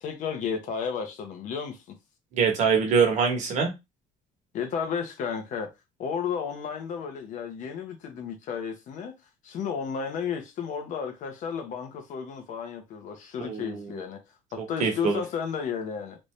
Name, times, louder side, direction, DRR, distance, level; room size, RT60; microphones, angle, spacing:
voice 1, 0.0-1.8 4.5-5.7 6.0-9.1 9.4-14.2 14.5-16.2, left 6 dB, 55° left, 1.0 m, -33 dB
voice 2, 2.3-3.7 13.4-13.9 14.8-15.2, right 5 dB, 55° right, 1.3 m, -24 dB
3.3 x 2.7 x 3.2 m
cardioid pair, 135°, 15 cm